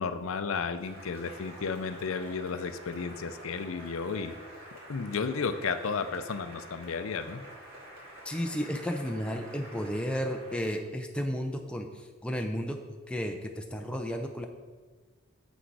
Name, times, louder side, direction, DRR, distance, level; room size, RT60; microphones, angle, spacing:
voice 1, 0.0-4.3 4.9-7.4, left 5 dB, 70° left, 10 dB, 0.5 m, -33 dB
Cheering / Applause, 0.8-10.8, right 1 dB, 45° right, 2.3 m, -48 dB
voice 2, 8.2-12.8 13.1-14.5, equal, 5° left, 3 dB, 0.4 m, -33 dB
7.0 x 6.3 x 4.7 m, 1.4 s
head